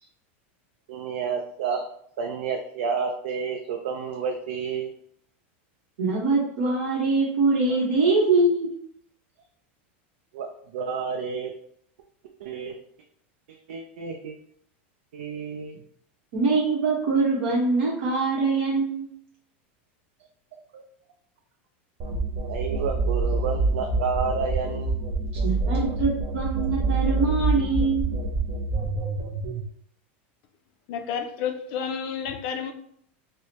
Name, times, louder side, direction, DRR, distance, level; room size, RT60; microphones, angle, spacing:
voice 1, 0.9-1.8 2.2-4.9 10.3-11.5 12.4-12.8 13.5-14.4 15.1-15.8 20.7-20.8 22.5-25.0 25.3-25.4, right 5 dB, 80° right, 2 dB, 0.4 m, -30 dB
voice 2, 6.0-8.7 16.3-19.0 25.4-28.0, right 3 dB, 60° right, -5 dB, 1.0 m, -23 dB
sound 1, 22.0-29.6, right 3 dB, 30° right, 0.6 m, -26 dB
voice 3, 30.9-32.7, left 7 dB, 40° left, 6 dB, 0.4 m, -30 dB
4.7 x 2.1 x 2.8 m, 0.67 s
supercardioid pair, 175°, 7 cm